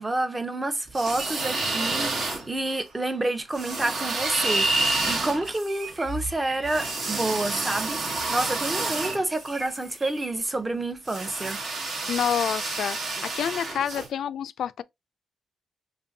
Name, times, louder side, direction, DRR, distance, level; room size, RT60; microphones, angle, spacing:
voice 1, 0.0-8.0 8.3-11.6, right 2 dB, 20° right, 0.6 m, -29 dB
sound 1, 0.9-2.8 3.5-9.9 11.0-14.1, right 3 dB, 60° right, 1.1 m, -30 dB
Chirp tweet, 1.2-2.8 3.8-7.0 8.1-8.4 8.9-9.2 9.5-9.7 10.0-10.3, right 1 dB, 80° right, 1.5 m, -31 dB
voice 2, 12.1-14.8, left 9 dB, 75° left, 0.3 m, -28 dB
5.2 x 2.5 x 2.6 m
cardioid pair, 85°, 0 cm